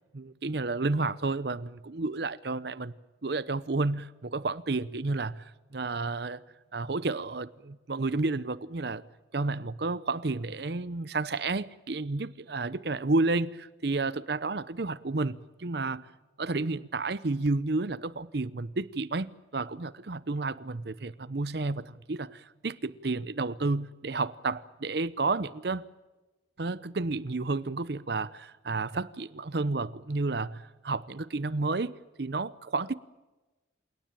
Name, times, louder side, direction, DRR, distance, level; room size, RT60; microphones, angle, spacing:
voice 1, 0.1-2.9 3.2-6.4 6.7-9.0 9.3-16.1 16.4-25.9 26.6-33.0, right 3 dB, 60° right, 0.7 m, -31 dB
28.0 x 18.0 x 9.0 m
head